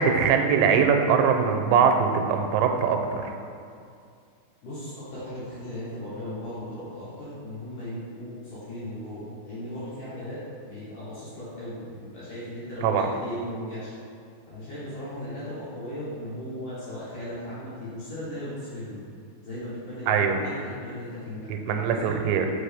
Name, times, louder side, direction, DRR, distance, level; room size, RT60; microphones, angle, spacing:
voice 1, 0.0-3.3 12.8-13.1 20.1-20.4 21.5-22.5, right 6 dB, 90° right, 5 dB, 3.0 m, -22 dB
voice 2, 4.6-10.4 10.7-13.9 14.5-19.0 19.4-22.2, left 1 dB, 65° left, -11 dB, 2.2 m, -37 dB
5.9 x 5.4 x 3.4 m, 2.3 s
omnidirectional pair, 5.4 m